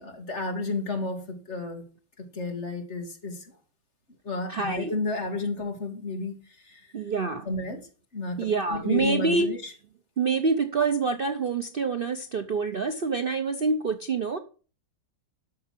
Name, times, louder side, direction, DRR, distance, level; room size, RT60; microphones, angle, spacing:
voice 1, 0.0-1.8 2.2-3.5 4.2-6.9 7.5-9.7, left 3 dB, 35° left, 2.3 m, -32 dB
voice 2, 4.5-4.9 6.9-7.5 8.4-9.5 10.2-14.4, right 4 dB, 80° right, 0.5 m, -26 dB
12.0 x 6.8 x 6.1 m
omnidirectional pair, 2.2 m